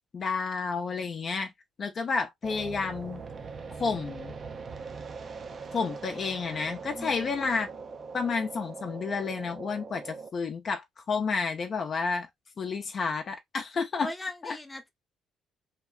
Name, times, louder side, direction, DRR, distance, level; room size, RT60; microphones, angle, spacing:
voice 1, 0.1-1.5 1.8-3.2 3.8-4.3 5.7-7.7 8.1-12.3 12.6-14.1 14.4-14.6, left 5 dB, 50° left, 0.5 m, -30 dB
sound 1, 2.4-10.3, right 4 dB, 50° right, 0.5 m, -41 dB
voice 2, 6.8-7.4 14.0-14.9, left 1 dB, 15° left, 0.7 m, -39 dB
2.8 x 2.1 x 2.3 m
hypercardioid pair, 55°, 0 cm